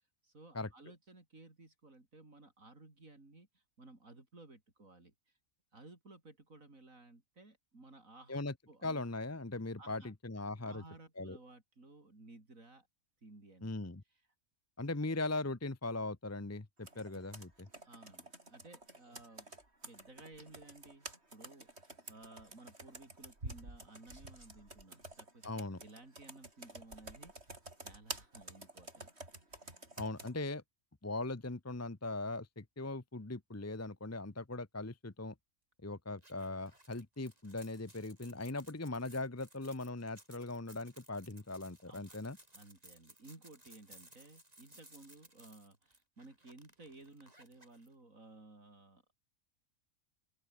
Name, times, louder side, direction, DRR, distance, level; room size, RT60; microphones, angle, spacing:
voice 1, 0.2-5.4 5.7-9.0 9.8-10.1 10.6-12.9 13.2-13.7 17.8-19.6 19.9-29.1 29.5-29.9 41.9-42.2 42.5-49.0, right 2 dB, 85° right, 5.3 m, -57 dB
voice 2, 8.8-10.8 11.2-11.4 13.6-14.0 14.8-17.7 25.4-25.8 30.0-30.6 31.0-35.3 35.8-42.4, left 2 dB, 15° left, 0.9 m, -40 dB
Computer keyboard, 16.8-30.3, right 2 dB, 50° right, 5.8 m, -50 dB
sound 1, 36.2-47.9, right 1 dB, 30° right, 7.2 m, -61 dB
open air
omnidirectional pair, 1.4 m